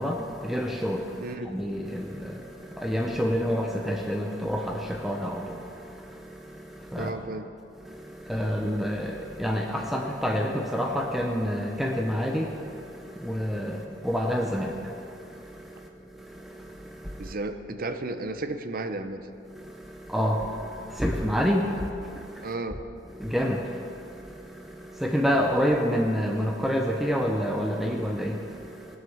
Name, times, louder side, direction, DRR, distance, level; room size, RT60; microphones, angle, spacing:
voice 1, 0.0-7.3 7.7-17.3 19.5-22.5 23.1-29.0, equal, ahead, 1 dB, 0.8 m, -29 dB
voice 2, 7.0-7.4 17.2-19.2 22.4-22.8, right 2 dB, 50° right, 8 dB, 0.8 m, -33 dB
19.5 x 6.5 x 7.2 m, 2.6 s
head